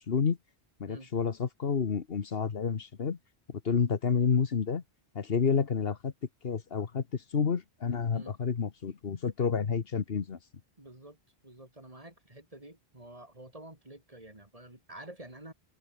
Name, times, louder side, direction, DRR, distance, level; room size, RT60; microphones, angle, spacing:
voice 1, 0.1-0.4 0.8-3.2 3.5-4.8 5.1-6.1 6.4-10.4, left 6 dB, 65° left, 1.4 m, -29 dB
voice 2, 10.8-11.2 11.4-15.5, right 1 dB, 35° right, 3.7 m, -49 dB
omnidirectional pair, 1.1 m